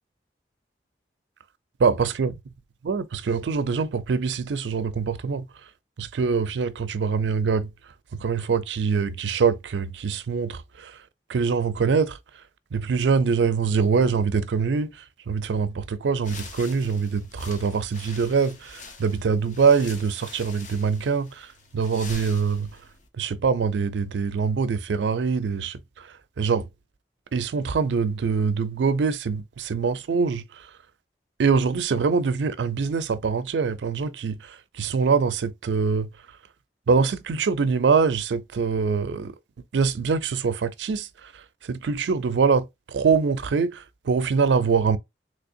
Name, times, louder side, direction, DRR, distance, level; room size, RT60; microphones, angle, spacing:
voice 1, 1.8-2.3 2.8-5.5 6.0-7.7 8.2-11.0 11.3-12.2 12.7-15.0 15.3-21.5 21.7-22.7 23.2-26.7 27.3-30.6 31.4-36.1 36.9-39.3 39.7-41.3 41.7-45.0, right 5 dB, 90° right, 0.4 m, -24 dB
sound 1, 16.2-23.1, left 3 dB, 45° left, 0.8 m, -44 dB
3.4 x 3.2 x 2.5 m
head